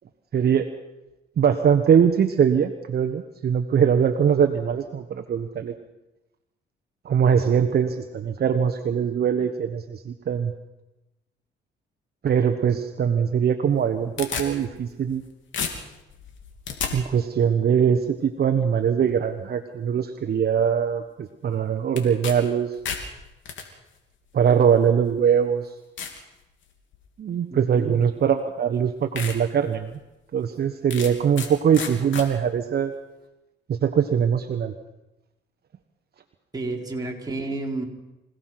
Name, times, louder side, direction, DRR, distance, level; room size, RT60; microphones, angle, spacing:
voice 1, 0.3-0.7 1.4-5.7 7.0-10.5 12.2-15.2 16.9-22.7 24.3-25.7 27.2-29.9 30.3-32.9 33.7-34.7, right 7 dB, 55° right, 6 dB, 1.3 m, -22 dB
sound 1, 13.7-15.2 15.5-16.9 22.0-22.4 22.7-23.6 24.5-24.6 25.2-25.3 26.0-26.2 26.7-27.1 28.2-28.3 28.7-28.8 29.2-29.4 29.8-29.9 30.9-31.5 31.7-32.3, left 7 dB, 75° left, 3.3 m, -32 dB
voice 2, 27.5-28.0 36.5-37.8, right 2 dB, 20° right, -1 dB, 4.2 m, -30 dB
26.0 x 17.5 x 6.0 m, 0.99 s
cardioid pair, 90°, 20 cm